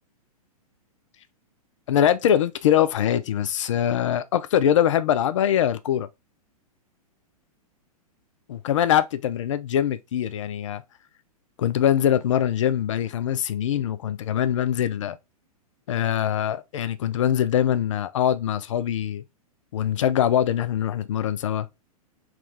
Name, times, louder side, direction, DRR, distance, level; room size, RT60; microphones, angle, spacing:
voice 1, 1.9-6.1 8.5-10.8 11.6-15.2 15.9-19.2 19.7-21.7, left 10 dB, 55° left, 0.4 m, -23 dB
3.6 x 2.4 x 3.2 m
figure-of-eight pair, 105°, 20 cm